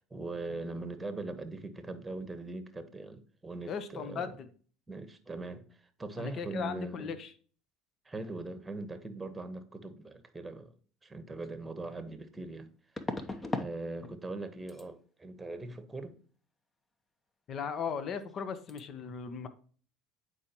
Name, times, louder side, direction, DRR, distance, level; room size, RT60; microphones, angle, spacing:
voice 1, 0.1-4.4 4.9-7.2 8.0-10.7 11.0-12.7 13.2-16.2, right 2 dB, 15° right, 1.1 m, -41 dB
voice 2, 3.7-4.5 6.2-7.3 17.5-19.5, left 6 dB, 50° left, 0.8 m, -37 dB
sound 1, 11.4-11.5 13.0-13.7 14.0-14.4 14.7-14.9 17.8-17.9 18.2-18.4 18.7-18.8, left 2 dB, 20° left, 0.8 m, -37 dB
8.5 x 4.7 x 2.9 m
supercardioid pair, 85°, 0 cm